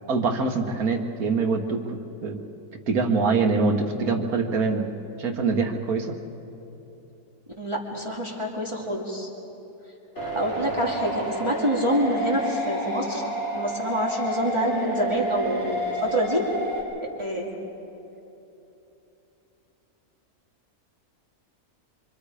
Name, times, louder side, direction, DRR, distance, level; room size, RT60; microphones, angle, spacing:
voice 1, 0.1-2.4 2.9-4.9 5.2-6.2, right 4 dB, 75° right, 3 dB, 1.9 m, -24 dB
voice 2, 7.6-9.3 10.2-13.2 13.5-16.5 17.2-17.5, equal, 20° right, -3 dB, 2.4 m, -26 dB
sound 1, 10.2-16.8, right 1 dB, 50° left, 4.8 m, -30 dB
25.5 x 25.5 x 5.0 m, 3.0 s
omnidirectional pair, 1.6 m